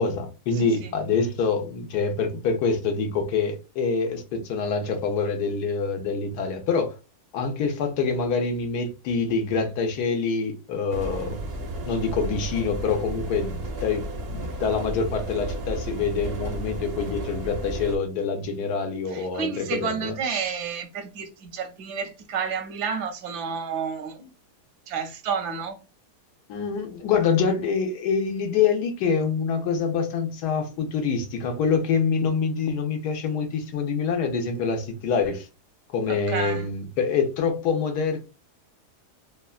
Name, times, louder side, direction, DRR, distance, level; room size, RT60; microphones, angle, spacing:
voice 1, 0.0-6.9 7.3-11.4 11.8-14.0 14.3-20.4 26.5-35.5 35.9-38.2, left 5 dB, 85° left, 1.2 m, -26 dB
voice 2, 0.6-0.9 19.1-24.3 24.9-25.8 36.1-36.7, right 6 dB, 85° right, 1.2 m, -30 dB
sound 1, 10.9-18.0, right 1 dB, 65° right, 0.6 m, -33 dB
3.3 x 2.1 x 2.3 m
omnidirectional pair, 1.7 m